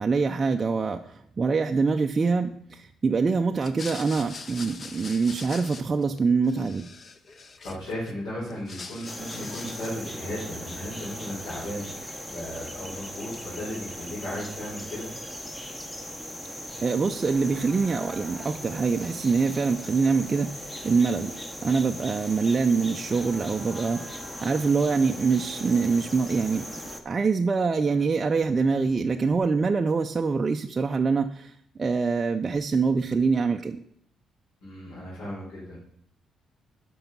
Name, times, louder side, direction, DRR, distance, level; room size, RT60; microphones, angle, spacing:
voice 1, 0.0-6.9 16.8-21.3 21.6-26.7 27.0-33.8, right 4 dB, 25° right, 4 dB, 0.4 m, -25 dB
sound 1, 3.5-6.2 6.4-8.1 8.5-10.1, left 4 dB, 35° left, 0.7 m, -42 dB
voice 2, 7.3-15.1 34.6-35.8, equal, 70° left, -8 dB, 4.2 m, -36 dB
sound 2, 9.1-27.0, equal, 10° left, 0.9 m, -39 dB
12.0 x 5.4 x 5.4 m, 0.68 s
cardioid pair, 145°, 0 cm